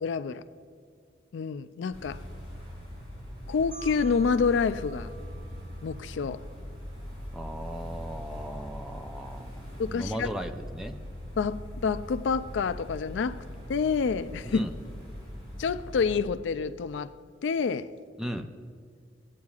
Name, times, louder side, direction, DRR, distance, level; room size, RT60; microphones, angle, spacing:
voice 1, 0.0-0.4 1.3-2.2 3.5-5.1 5.8-6.4 9.8-10.3 11.4-13.4 13.7-14.6 15.6-17.1 17.4-17.9, left 5 dB, 75° left, 0.4 m, -28 dB
sound 1, 1.9-16.2, equal, 30° right, 2.9 m, -41 dB
Marimba xylophone, 3.7-6.5, right 5 dB, 65° right, 2.6 m, -50 dB
voice 2, 7.3-9.6 9.9-11.0 14.4-14.7 18.2-18.5, equal, 5° right, 0.4 m, -37 dB
18.5 x 8.4 x 2.4 m
head